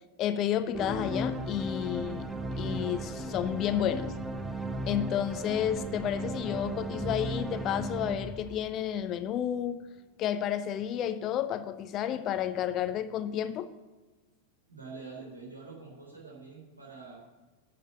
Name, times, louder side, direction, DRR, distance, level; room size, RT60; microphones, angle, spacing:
voice 1, 0.2-4.1 4.9-9.8 10.2-13.7, left 10 dB, 35° left, 0.6 m, -31 dB
sound 1, 0.7-9.2, right 1 dB, 5° right, 0.8 m, -36 dB
voice 2, 14.7-17.2, right 4 dB, 80° right, 3.4 m, -46 dB
9.8 x 6.7 x 8.7 m
figure-of-eight pair, 90°, 0 cm